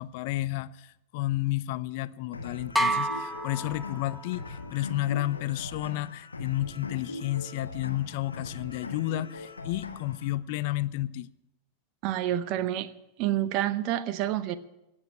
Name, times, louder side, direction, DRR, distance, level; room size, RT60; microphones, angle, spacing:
voice 1, 0.0-11.3, left 15 dB, 50° left, 0.5 m, -31 dB
sound 1, 2.3-10.3, left 3 dB, 75° left, 1.7 m, -41 dB
sound 2, 2.7-4.5, right 1 dB, ahead, 1.0 m, -29 dB
voice 2, 12.0-12.9 13.2-14.6, right 12 dB, 40° right, 0.8 m, -28 dB
17.0 x 7.3 x 9.7 m
figure-of-eight pair, 90°, 0 cm